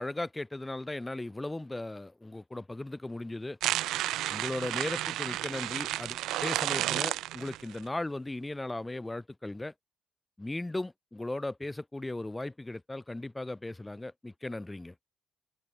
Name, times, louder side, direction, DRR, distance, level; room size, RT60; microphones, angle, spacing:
voice 1, 0.0-3.6 4.3-9.7 10.4-14.9, left 2 dB, 15° left, 2.8 m, -37 dB
sound 1, 3.6-7.8, right 15 dB, 90° right, 3.2 m, -32 dB
cardioid pair, 90°, 0 cm